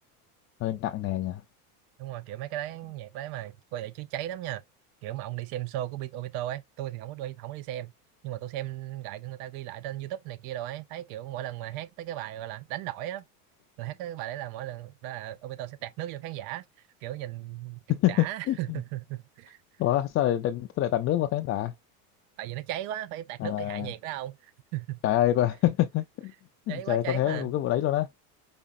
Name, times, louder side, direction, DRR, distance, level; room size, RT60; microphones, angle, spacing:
voice 1, 0.6-1.4 17.9-18.8 19.8-21.7 23.4-23.9 25.0-26.3 26.7-28.1, left 13 dB, 30° left, 0.5 m, -26 dB
voice 2, 2.0-4.6 5.0-7.9 8.2-13.2 13.8-16.7 17.0-17.8 18.1-19.6 22.4-25.0 26.7-27.5, right 13 dB, 50° right, 0.8 m, -36 dB
5.3 x 3.6 x 2.5 m
supercardioid pair, 120°, 45 cm